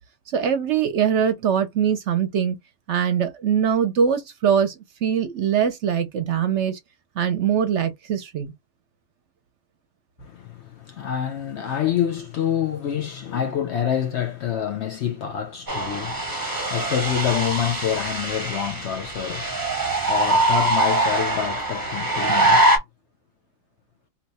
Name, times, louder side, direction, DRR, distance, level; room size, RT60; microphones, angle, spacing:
voice 1, 0.3-2.6 2.9-6.8 7.2-8.5, right 8 dB, 60° right, 0.8 m, -22 dB
voice 2, 10.2-22.8, left 9 dB, 65° left, 0.7 m, -27 dB
sound 1, 15.7-22.8, right 2 dB, 20° right, 0.8 m, -23 dB
2.8 x 2.2 x 4.1 m
omnidirectional pair, 1.5 m